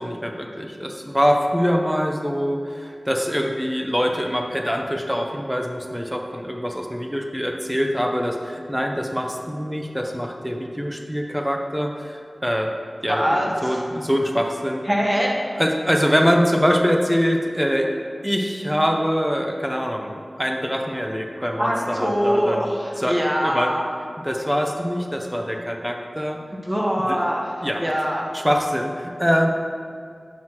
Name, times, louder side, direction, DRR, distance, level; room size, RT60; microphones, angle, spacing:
voice 1, 0.0-12.7 13.0-14.8 15.6-17.9 18.2-20.1 20.4-22.7 23.0-23.7 24.2-26.4 27.1-27.2 27.6-27.8 28.3-29.5, equal, 5° right, 2 dB, 0.8 m, -24 dB
voice 2, 13.1-13.8 14.9-15.3 21.6-23.8 26.6-27.5 27.8-28.3, equal, 25° right, -2 dB, 1.2 m, -23 dB
7.7 x 3.1 x 5.8 m, 2.3 s
wide cardioid pair, 45°, 0 cm